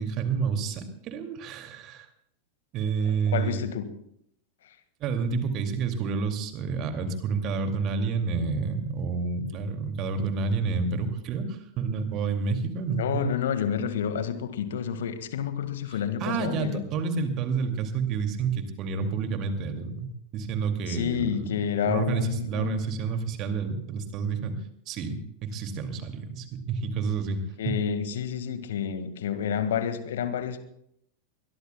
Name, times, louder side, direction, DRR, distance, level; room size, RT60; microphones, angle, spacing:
voice 1, 0.0-2.1 2.7-3.6 5.0-13.3 16.2-24.5 24.9-27.8, right 5 dB, 35° right, 2.3 m, -29 dB
voice 2, 3.3-3.9 13.0-16.9 20.9-22.8 27.6-30.7, left 8 dB, 60° left, 1.7 m, -29 dB
23.0 x 21.5 x 2.2 m
figure-of-eight pair, 90°, 0 cm